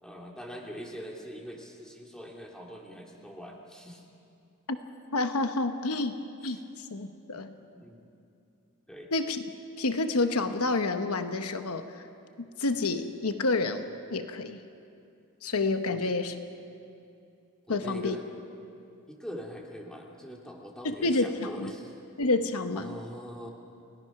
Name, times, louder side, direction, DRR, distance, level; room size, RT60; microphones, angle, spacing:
voice 1, 0.0-4.0 6.4-6.6 7.3-7.4 7.7-8.1 8.9-9.1 15.9-16.1 17.7-18.2 19.1-22.0 22.7-23.5, equal, 5° left, -1 dB, 2.3 m, -43 dB
voice 2, 5.1-6.2 6.4-7.5 9.1-9.4 9.8-12.0 12.4-14.6 15.4-16.3 17.7-18.2 20.8-21.7 22.2-23.0, left 3 dB, 80° left, 8 dB, 1.0 m, -29 dB
30.0 x 17.0 x 5.9 m, 2.6 s
head